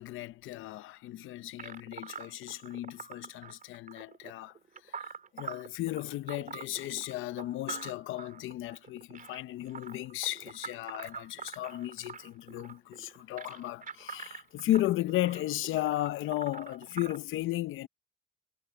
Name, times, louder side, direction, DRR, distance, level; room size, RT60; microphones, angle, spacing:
voice 1, 0.0-4.5 4.9-17.9, left 15 dB, 85° left, 0.7 m, -35 dB
sound 1, 1.6-17.2, right 6 dB, 45° right, 3.4 m, -45 dB
cardioid pair, 90°, 20 cm